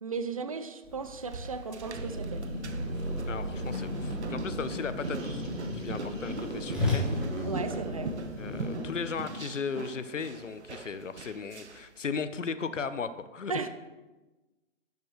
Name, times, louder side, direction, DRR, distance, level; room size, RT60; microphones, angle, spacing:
voice 1, 0.0-2.5 7.5-8.2 13.5-13.7, right 4 dB, 30° right, 0.5 m, -35 dB
Whoosh swoosh swish, 0.8-8.6, left 2 dB, ahead, 2.2 m, -38 dB
sound 1, 1.0-11.9, right 3 dB, 60° right, 1.1 m, -42 dB
sound 2, 1.9-9.1, equal, 80° right, 3.3 m, -36 dB
voice 2, 3.3-7.1 8.4-13.7, left 5 dB, 75° left, 0.9 m, -36 dB
12.0 x 10.5 x 3.2 m
figure-of-eight pair, 145°, 38 cm